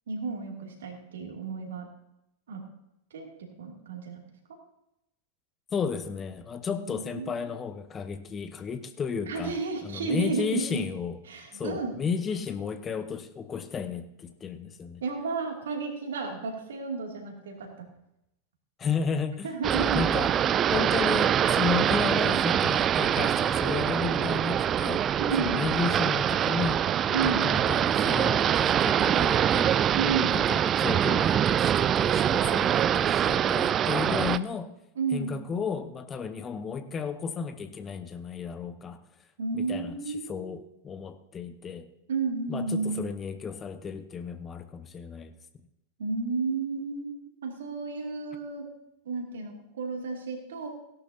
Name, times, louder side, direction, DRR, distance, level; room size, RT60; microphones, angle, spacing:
voice 1, 0.1-1.9 2.5-2.6 3.1-3.3 3.6-4.3 6.8-7.5 9.3-10.8 11.3-12.0 15.0-17.9 19.4-20.0 25.2-25.6 27.1-27.5 30.0-30.4 35.0-35.4 39.4-40.5 42.1-43.1 46.0-47.1 47.4-48.7 49.0-50.7, right 4 dB, 60° right, 1 dB, 2.5 m, -32 dB
voice 2, 5.7-9.5 9.8-11.2 11.5-15.0 18.8-19.5 19.8-25.1 25.4-29.8 30.3-34.7 35.1-39.0 39.5-41.9 42.5-45.3, left 6 dB, 20° left, 10 dB, 0.7 m, -33 dB
sound 1, 19.6-34.4, right 9 dB, 25° right, 0.4 m, -24 dB
17.0 x 11.5 x 2.8 m, 0.86 s
figure-of-eight pair, 90°, 0 cm